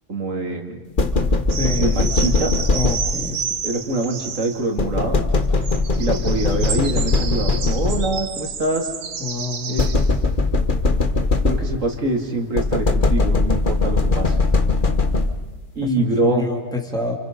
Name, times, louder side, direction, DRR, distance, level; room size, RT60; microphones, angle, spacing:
voice 1, 0.1-0.8 1.7-2.5 3.6-5.2 6.0-8.9 9.7-9.9 11.4-14.4 15.7-16.5, right 2 dB, 65° right, 3 dB, 2.9 m, -24 dB
sound 1, 1.0-3.4 4.8-8.4 9.8-12.0 12.6-15.6, left 3 dB, 40° left, 1.4 m, -20 dB
sound 2, 1.5-4.9 5.4-13.2 13.5-14.8, right 6 dB, 80° right, 1.6 m, -31 dB
voice 2, 1.6-1.9 2.2-2.4 2.7-3.4 9.2-9.8 15.8-17.2, left 4 dB, 5° left, 1 dB, 2.7 m, -27 dB
29.0 x 28.5 x 5.3 m, 1.2 s
omnidirectional pair, 1.4 m